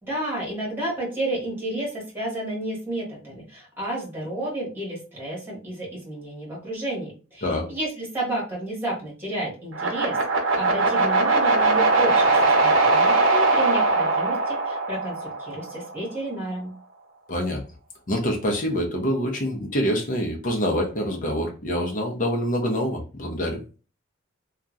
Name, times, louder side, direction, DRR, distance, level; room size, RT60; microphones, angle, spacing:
voice 1, 0.0-10.2 10.5-16.7, right 1 dB, 10° right, -4 dB, 1.6 m, -31 dB
sound 1, 9.7-15.9, right 3 dB, 75° right, 0.7 m, -21 dB
voice 2, 17.3-17.6 18.1-23.6, equal, 45° left, 1 dB, 0.8 m, -25 dB
2.9 x 2.4 x 2.5 m, 0.34 s
head